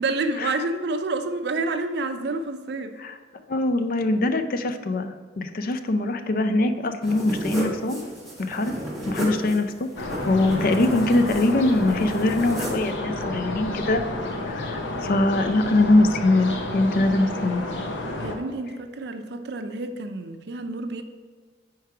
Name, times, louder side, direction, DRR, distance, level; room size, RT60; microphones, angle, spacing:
voice 1, 0.0-3.0 18.2-21.0, right 3 dB, 60° right, 8 dB, 0.5 m, -29 dB
voice 2, 3.5-8.0 8.5-8.7 9.1-14.0 14.5-17.7, left 2 dB, 50° left, 9 dB, 0.4 m, -22 dB
sound 1, 7.0-12.9, equal, ahead, 1.4 m, -33 dB
sound 2, 10.0-18.4, left 1 dB, 90° left, 0.8 m, -31 dB
4.7 x 4.6 x 5.8 m, 1.5 s
head